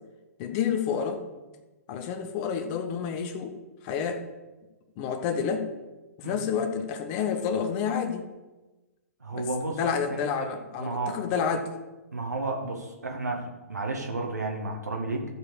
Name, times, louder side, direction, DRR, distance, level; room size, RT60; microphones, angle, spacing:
voice 1, 0.4-1.2 1.9-3.5 3.8-4.3 5.0-5.7 6.2-8.2 9.3-11.7, left 7 dB, 35° left, 7 dB, 1.3 m, -29 dB
voice 2, 9.2-9.8 10.1-10.3 10.8-11.2 12.1-15.3, right 2 dB, 85° right, 1 dB, 1.8 m, -32 dB
14.0 x 5.1 x 6.6 m, 1.2 s
figure-of-eight pair, 120°, 9 cm